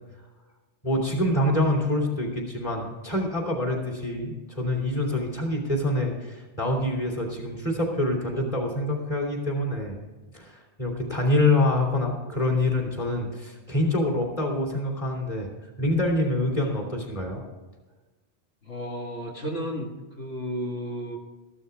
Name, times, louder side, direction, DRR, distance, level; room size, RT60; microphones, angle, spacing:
voice 1, 0.8-10.0 10.3-15.5 15.8-17.4, left 1 dB, 30° left, -1 dB, 3.1 m, -26 dB
voice 2, 18.7-21.2, equal, 75° left, -2 dB, 2.2 m, -33 dB
14.0 x 12.5 x 3.5 m, 1.2 s
omnidirectional pair, 1.2 m